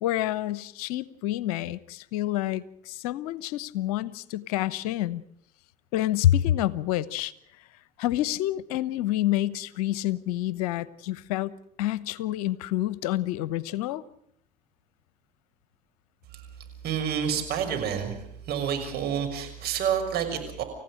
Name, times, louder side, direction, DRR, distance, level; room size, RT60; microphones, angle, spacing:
voice 1, 0.0-5.2 5.9-7.3 8.0-11.5 11.8-14.0, left 13 dB, 75° left, 19 dB, 0.9 m, -28 dB
voice 2, 16.8-18.2 18.5-20.6, right 8 dB, 55° right, 5 dB, 6.3 m, -28 dB
28.5 x 15.5 x 6.5 m, 0.71 s
hypercardioid pair, 65°, 19 cm